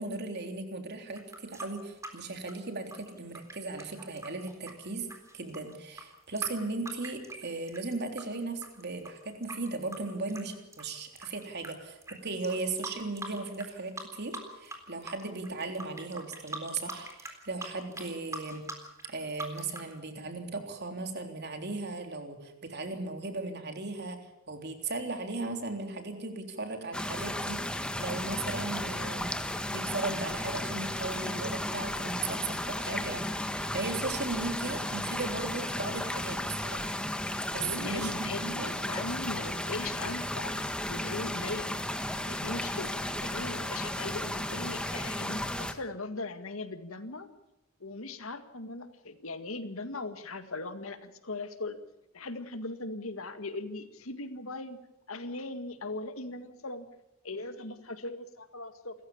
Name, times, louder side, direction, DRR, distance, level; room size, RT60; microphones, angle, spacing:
voice 1, 0.0-18.6 19.1-36.9 37.5-38.8, right 3 dB, 55° right, 5 dB, 3.5 m, -37 dB
sound 1, 1.1-8.2 8.6-11.7 12.0-12.1 12.4-13.7 14.0-14.8 15.0-19.9, right 1 dB, 15° right, 3.8 m, -42 dB
sound 2, 26.9-45.7, left 1 dB, 5° left, 1.5 m, -34 dB
voice 2, 37.6-41.7 42.3-42.9 43.2-47.3 47.8-51.8 52.1-54.8 55.1-56.9 57.2-58.9, left 2 dB, 85° left, 9 dB, 2.0 m, -39 dB
29.0 x 14.5 x 7.2 m, 0.92 s
head